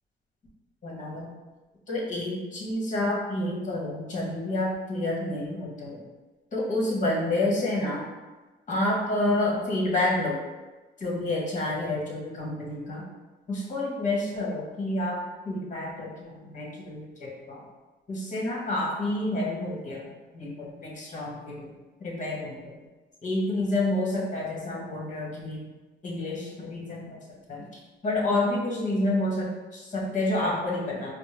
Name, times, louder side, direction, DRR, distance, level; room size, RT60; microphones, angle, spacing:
voice 1, 0.8-1.3 1.9-6.0 6.5-8.1 8.7-10.4 11.0-13.1 13.5-17.6 18.1-20.1 20.3-21.7 22.0-22.8 23.2-25.7 26.0-27.2 27.5-27.7 28.0-31.1, left 1 dB, 40° left, -4 dB, 1.2 m, -29 dB
4.3 x 2.0 x 3.2 m, 1.2 s
cardioid pair, 90°, 20 cm